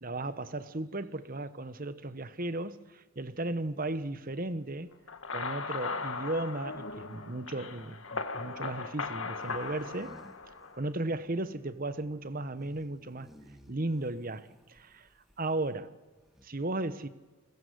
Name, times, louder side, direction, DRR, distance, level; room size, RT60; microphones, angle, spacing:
voice 1, 0.0-4.9 5.3-10.2 10.7-13.3 13.7-15.1 15.4-15.9 16.4-17.1, right 2 dB, 40° right, 1.1 m, -35 dB
sound 1, 3.5-15.8 16.1-16.5, equal, ahead, 2.2 m, -59 dB
Wind instrument woodwind instrument, 4.8-8.2 8.7-10.7 11.0-11.2 11.5-11.8 12.0-12.3, right 2 dB, 25° right, 5.6 m, -63 dB
sound 2, 5.1-10.9, left 4 dB, 65° left, 2.0 m, -38 dB
28.5 x 21.5 x 8.1 m
head